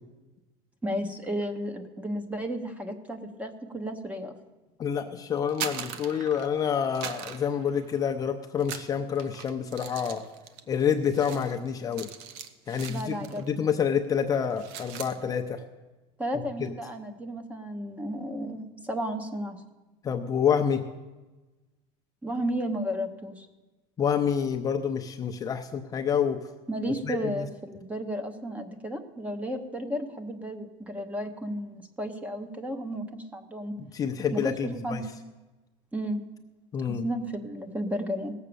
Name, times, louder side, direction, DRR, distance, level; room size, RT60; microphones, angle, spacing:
voice 1, 0.8-4.4 12.9-13.6 16.2-19.6 22.2-23.5 26.7-33.7 34.3-35.0 35.9-36.2 36.8-38.3, equal, 10° right, 8 dB, 1.0 m, -33 dB
voice 2, 4.8-10.2 10.7-12.1 12.7-15.6 16.6-16.7 20.0-20.8 24.0-26.5 27.0-27.5 33.8-35.0 36.7-37.1, left 7 dB, 25° left, 5 dB, 0.6 m, -28 dB
sound 1, 5.4-6.6 6.9-8.2 8.6-13.5 13.8-14.0 14.4-15.2, right 8 dB, 75° right, 1.0 m, -40 dB
17.5 x 7.4 x 6.8 m, 1.2 s
cardioid pair, 150°, 14 cm